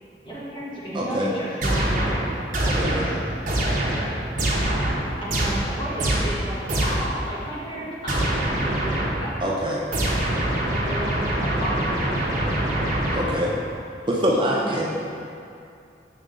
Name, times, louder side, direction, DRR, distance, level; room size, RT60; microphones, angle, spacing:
voice 1, 0.2-3.1 5.2-9.5 10.9-13.1 14.5-15.1, right 1 dB, 25° left, -7 dB, 1.2 m, -33 dB
voice 2, 0.9-1.3 2.6-3.0 9.4-9.8 13.1-13.5 14.1-14.9, equal, 25° right, -4 dB, 0.5 m, -24 dB
sound 1, 1.6-7.2 8.1-9.4 9.9-13.6, right 1 dB, 45° right, 0.9 m, -24 dB
6.7 x 3.8 x 3.7 m, 2.6 s
head